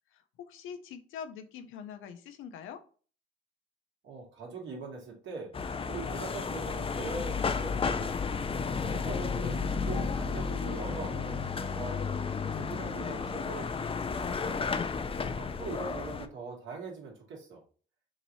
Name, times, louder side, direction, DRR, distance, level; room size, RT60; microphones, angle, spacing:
voice 1, 0.1-2.8, left 7 dB, 70° left, 8 dB, 0.8 m, -44 dB
voice 2, 4.0-5.5 5.9-8.4 8.8-12.1 12.5-13.7 14.3-14.7 15.3-17.6, right 4 dB, 65° right, -1 dB, 2.1 m, -42 dB
sound 1, 5.5-16.3, left 5 dB, 25° left, 0.5 m, -32 dB
5.8 x 3.1 x 2.7 m, 0.40 s
supercardioid pair, 70°, 21 cm